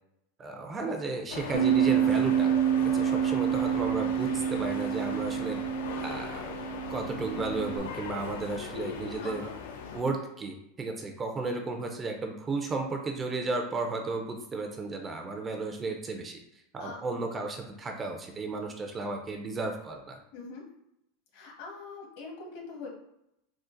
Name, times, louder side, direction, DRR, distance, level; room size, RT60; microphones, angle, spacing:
voice 1, 0.4-5.6 6.0-6.6 6.9-9.4 9.9-16.4 16.7-20.2, right 3 dB, 20° right, 4 dB, 0.4 m, -34 dB
sound 1, 1.3-10.0, left 5 dB, 85° left, 0.5 m, -39 dB
Bass guitar, 1.5-7.8, right 10 dB, 65° right, 0.6 m, -28 dB
voice 2, 9.2-9.5 16.8-17.0 20.3-20.6 21.3-22.9, left 3 dB, 65° left, -1 dB, 1.2 m, -42 dB
3.7 x 2.4 x 2.5 m, 0.83 s
supercardioid pair, 145°, 0 cm